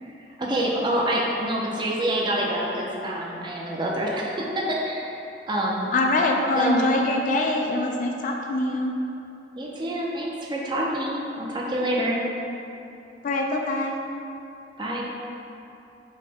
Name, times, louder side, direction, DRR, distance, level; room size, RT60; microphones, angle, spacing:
voice 1, 0.4-5.0 5.5-5.9 6.5-6.9 9.6-12.2 14.8-15.0, right 1 dB, 25° right, -3 dB, 0.5 m, -26 dB
voice 2, 5.9-8.9 13.2-14.0, left 2 dB, 45° left, 1 dB, 0.3 m, -23 dB
5.4 x 2.1 x 3.4 m, 2.9 s
head